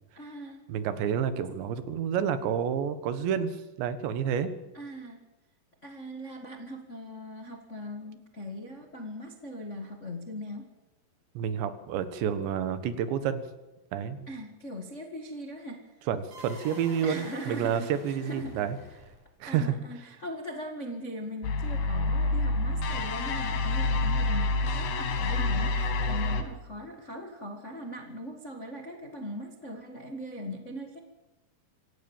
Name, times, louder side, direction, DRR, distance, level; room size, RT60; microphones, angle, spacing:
voice 1, 0.1-0.6 4.7-5.2 5.8-10.7 14.3-15.9 17.0-18.6 19.5-31.0, equal, 45° left, 3 dB, 0.9 m, -40 dB
voice 2, 0.7-4.5 11.4-13.4 13.9-14.3 16.1-18.8 19.4-19.8, right 8 dB, 90° right, 11 dB, 3.7 m, -29 dB
sound 1, 16.3-19.5, right 1 dB, 40° right, 8.9 m, -48 dB
sound 2, 21.4-26.4, left 2 dB, 70° left, 3.8 m, -27 dB
26.0 x 17.0 x 7.2 m, 1.0 s
omnidirectional pair, 4.9 m